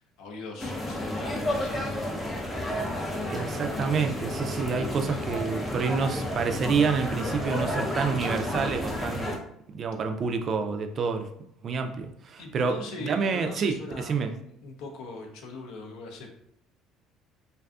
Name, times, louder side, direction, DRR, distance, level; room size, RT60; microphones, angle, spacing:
voice 1, 0.2-2.1 12.4-16.3, left 3 dB, 75° left, 2 dB, 0.5 m, -41 dB
sound 1, 0.6-9.4, left 1 dB, 20° left, 0.6 m, -31 dB
voice 2, 3.3-9.3 9.7-11.3 11.6-14.3, right 5 dB, 45° right, 6 dB, 0.3 m, -28 dB
2.5 x 2.3 x 2.3 m, 0.74 s
supercardioid pair, 90°, 0 cm